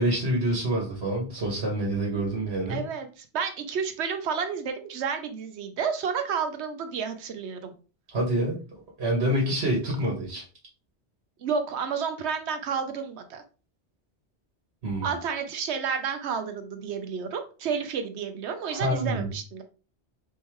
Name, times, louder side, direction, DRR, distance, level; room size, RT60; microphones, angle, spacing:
voice 1, 0.0-2.8 8.1-8.6 9.0-10.4 14.8-15.1 18.7-19.3, right 1 dB, 70° right, -2 dB, 1.6 m, -27 dB
voice 2, 2.7-7.7 11.4-13.4 15.0-19.6, right 6 dB, 85° right, 7 dB, 1.0 m, -31 dB
4.3 x 3.6 x 3.0 m, 0.35 s
omnidirectional pair, 1.1 m